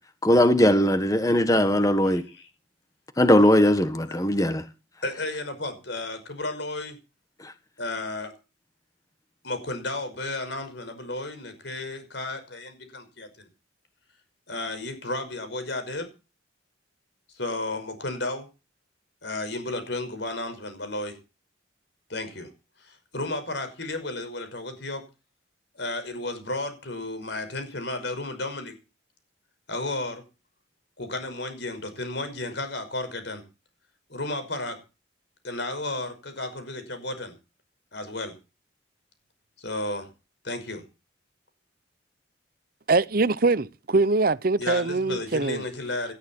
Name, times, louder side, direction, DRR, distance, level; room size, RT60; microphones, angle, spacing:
voice 1, 0.2-2.2 3.2-4.6, left 1 dB, 20° left, 1.5 m, -19 dB
voice 2, 2.0-2.5 5.0-7.0 7.8-8.3 9.4-13.5 14.5-16.1 17.3-18.5 19.2-21.2 22.1-22.5 22.8-25.0 25.7-28.7 29.7-30.2 31.0-33.4 34.1-34.8 35.4-37.3 37.9-38.3 39.6-40.1 40.4-40.8 44.6-46.1, left 2 dB, 65° left, 5.6 m, -33 dB
voice 3, 42.9-45.6, right 3 dB, 50° right, 0.8 m, -23 dB
18.5 x 12.5 x 4.5 m
head